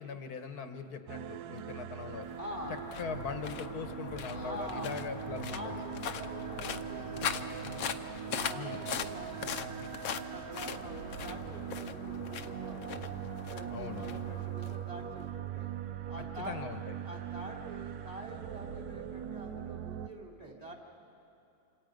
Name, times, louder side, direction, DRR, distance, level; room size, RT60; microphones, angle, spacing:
voice 1, 0.0-2.3 3.0-5.8 8.5-8.9 13.7-14.0 16.5-16.9, left 5 dB, 85° left, 7 dB, 1.8 m, -41 dB
sound 1, 1.1-20.1, right 9 dB, 85° right, 1.3 m, -41 dB
sound 2, 2.0-15.3, left 8 dB, 70° left, 1.2 m, -41 dB
voice 2, 2.4-2.8 4.3-4.9 5.4-7.9 8.2-9.8 10.3-13.2 13.5-15.7 16.1-16.6 17.0-20.7, right 1 dB, 25° right, 0 dB, 3.4 m, -46 dB
28.0 x 26.5 x 5.2 m, 2.8 s
omnidirectional pair, 1.6 m